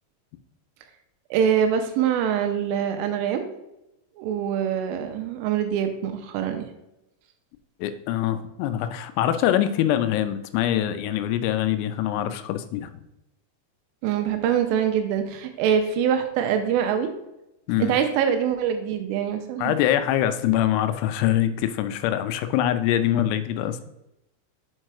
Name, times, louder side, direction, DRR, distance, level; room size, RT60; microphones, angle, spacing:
voice 1, 1.3-3.4 4.2-6.6 14.0-17.1 17.8-19.7, right 8 dB, 85° right, 6 dB, 3.2 m, -24 dB
voice 2, 7.8-13.0 17.7-17.9 19.6-23.8, left 11 dB, 85° left, 10 dB, 3.2 m, -24 dB
7.5 x 4.4 x 4.7 m, 0.89 s
omnidirectional pair, 5.9 m